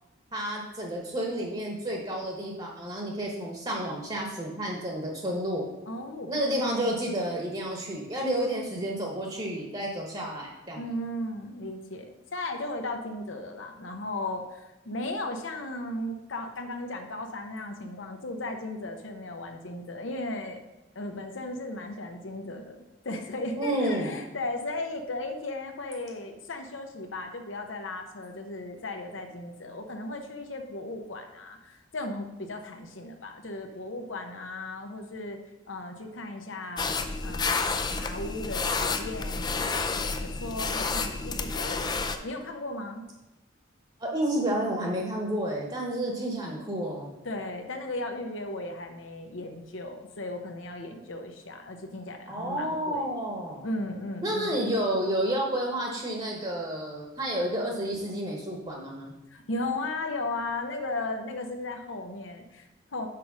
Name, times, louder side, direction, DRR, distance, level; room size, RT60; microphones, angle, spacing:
voice 1, 0.3-5.6 6.3-10.8 23.6-24.1 37.3-37.4 44.0-47.1 52.3-53.6 54.2-59.1, right 1 dB, 30° right, -1 dB, 1.2 m, -30 dB
voice 2, 5.9-6.6 10.8-20.6 20.9-35.4 35.7-37.6 37.9-43.0 47.2-53.1 53.6-54.7 59.3-63.1, left 2 dB, 85° left, 5 dB, 0.9 m, -36 dB
sound 1, 36.8-42.2, left 4 dB, 20° left, 0.4 m, -30 dB
6.1 x 4.8 x 6.1 m, 0.97 s
head